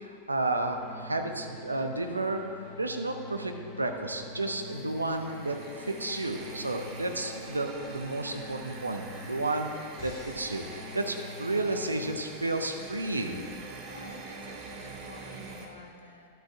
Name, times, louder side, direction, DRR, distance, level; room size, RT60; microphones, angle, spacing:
voice 1, 0.0-9.7 10.0-10.6 10.9-13.4, right 2 dB, 80° right, 5 dB, 0.7 m, -32 dB
sound 1, 0.7-12.3, left 1 dB, 40° left, 1.2 m, -46 dB
sound 2, 4.4-15.7, right 3 dB, 40° right, 1.0 m, -45 dB
voice 2, 13.9-16.3, left 2 dB, 80° left, 1 dB, 1.0 m, -49 dB
12.5 x 5.9 x 3.4 m, 2.2 s
figure-of-eight pair, 90°, 0 cm